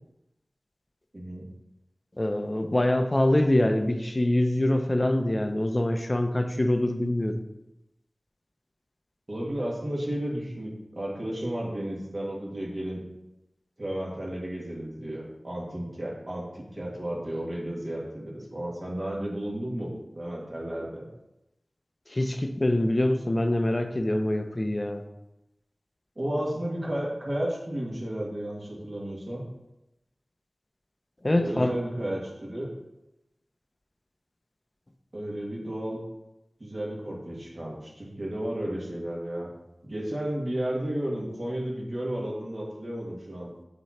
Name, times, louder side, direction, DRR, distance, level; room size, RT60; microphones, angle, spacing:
voice 1, 2.2-7.4 22.1-25.0 31.2-31.8, left 1 dB, 35° left, 7 dB, 0.6 m, -24 dB
voice 2, 9.3-13.0 13.8-21.0 26.2-29.4 31.4-32.7 35.1-36.0 36.6-39.5 39.8-43.5, right 1 dB, 45° right, -4 dB, 2.0 m, -33 dB
7.4 x 3.0 x 4.3 m, 0.92 s
wide cardioid pair, 40°, 0 cm